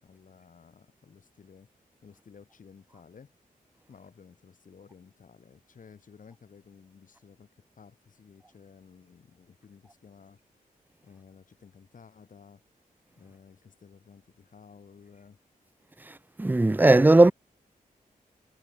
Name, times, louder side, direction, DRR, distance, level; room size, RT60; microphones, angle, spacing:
voice 1, 0.0-1.7 2.0-3.3 3.9-7.5 7.8-10.4 11.0-12.6 13.2-15.4, left 6 dB, 60° left, 6.0 m, -54 dB
voice 2, 16.4-17.3, right 2 dB, 10° right, 0.6 m, -17 dB
wide cardioid pair, 130°, 15 cm